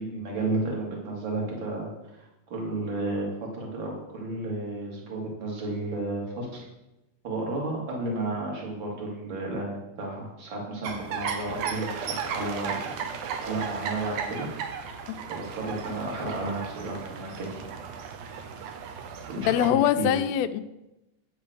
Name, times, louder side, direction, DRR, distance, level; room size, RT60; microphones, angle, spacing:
voice 1, 0.0-1.9 2.2-6.6 7.2-12.9 13.4-17.7 19.3-20.2, right 2 dB, 40° right, -1 dB, 2.5 m, -32 dB
sound 1, 10.8-19.7, right 6 dB, 80° right, 2.2 m, -35 dB
voice 2, 19.4-20.6, left 11 dB, 85° left, 8 dB, 1.5 m, -23 dB
8.8 x 5.3 x 6.3 m, 0.94 s
omnidirectional pair, 3.5 m